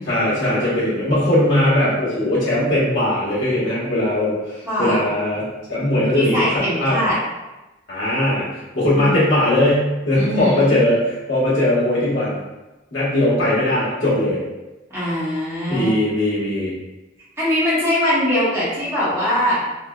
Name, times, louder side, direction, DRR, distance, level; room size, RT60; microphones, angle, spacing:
voice 1, 0.0-7.0 7.9-12.4 12.9-14.4 15.7-16.7, left 1 dB, 70° left, -8 dB, 1.2 m, -19 dB
voice 2, 4.6-5.0 6.1-7.1 8.9-9.2 10.1-10.7 14.9-15.9 17.4-19.6, equal, 15° right, -10 dB, 1.0 m, -21 dB
3.5 x 2.2 x 2.3 m, 1.1 s
head